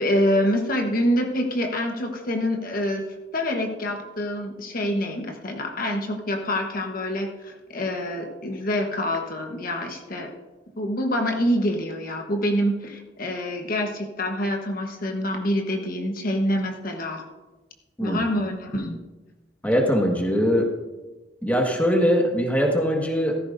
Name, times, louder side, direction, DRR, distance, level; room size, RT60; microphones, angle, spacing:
voice 1, 0.0-3.1 3.3-10.3 10.8-17.2 18.0-19.0, equal, 50° left, 3 dB, 1.2 m, -26 dB
voice 2, 19.6-20.7 21.4-23.4, equal, 10° left, 1 dB, 1.6 m, -21 dB
15.5 x 14.0 x 2.6 m, 1.1 s
head